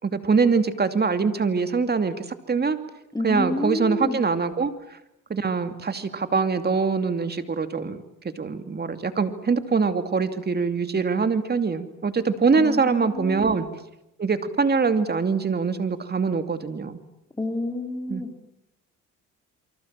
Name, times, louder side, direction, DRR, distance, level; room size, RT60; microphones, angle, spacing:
voice 1, 0.0-2.8 3.2-4.7 5.3-8.0 8.2-13.7 14.2-17.0 18.1-18.2, right 5 dB, 35° right, 9 dB, 2.6 m, -23 dB
voice 2, 3.1-4.2 12.5-13.5 17.4-18.5, left 2 dB, 10° left, 3 dB, 3.6 m, -29 dB
28.5 x 24.0 x 7.5 m, 0.85 s
cardioid pair, 90°, 30 cm